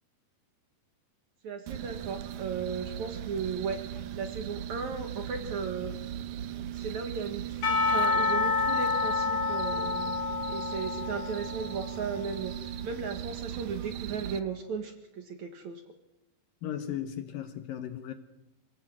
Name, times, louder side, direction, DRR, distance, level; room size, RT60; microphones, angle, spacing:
voice 1, 1.4-6.0 6.7-10.2 10.5-15.8, right 5 dB, 55° right, 2.3 m, -36 dB
sound 1, 1.7-14.4, right 11 dB, 75° right, 1.8 m, -38 dB
Percussion / Church bell, 7.6-12.0, left 4 dB, 45° left, 5.4 m, -28 dB
voice 2, 16.6-18.1, left 10 dB, 70° left, 2.5 m, -36 dB
26.5 x 16.5 x 7.7 m
omnidirectional pair, 4.8 m